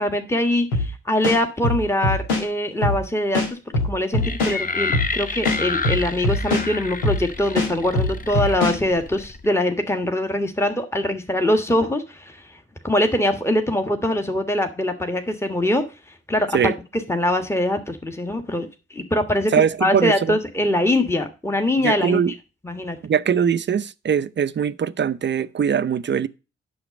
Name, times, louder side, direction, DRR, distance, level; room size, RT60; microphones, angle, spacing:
voice 1, 0.0-3.6 3.8-12.6 12.8-15.8 16.3-16.7 17.1-19.5 19.8-22.3 22.6-23.0, left 1 dB, 10° left, 1.5 m, -23 dB
sound 1, 0.7-0.9 1.2-2.4 2.8-3.0 3.3-4.6 4.9-5.1 5.4-6.7 7.0-7.2 7.6-8.8, left 2 dB, 90° left, 1.9 m, -22 dB
sound 2, 4.2-9.5, left 4 dB, 30° left, 1.1 m, -30 dB
voice 2, 19.5-20.4 21.8-22.3 23.0-26.3, right 7 dB, 35° right, 0.6 m, -21 dB
8.7 x 6.4 x 5.1 m
hypercardioid pair, 45°, 30 cm